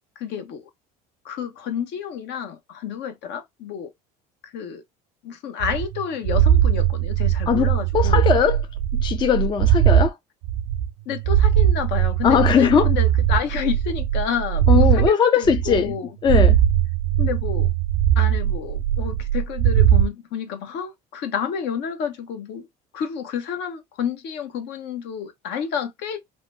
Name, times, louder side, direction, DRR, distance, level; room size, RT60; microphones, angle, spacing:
voice 1, 0.2-0.7 1.2-3.9 4.5-4.8 5.2-8.2 11.1-16.1 17.2-17.7 18.2-22.7 22.9-26.2, left 7 dB, 60° left, 0.8 m, -30 dB
sound 1, 5.6-10.1 10.4-15.1 15.4-16.0 16.2-20.1, right 11 dB, 75° right, 0.4 m, -20 dB
voice 2, 7.9-8.6 8.9-10.2 12.2-12.9 14.7-15.9 16.2-16.6, left 7 dB, 25° left, 0.4 m, -19 dB
2.8 x 2.1 x 3.3 m
supercardioid pair, 90°, 20 cm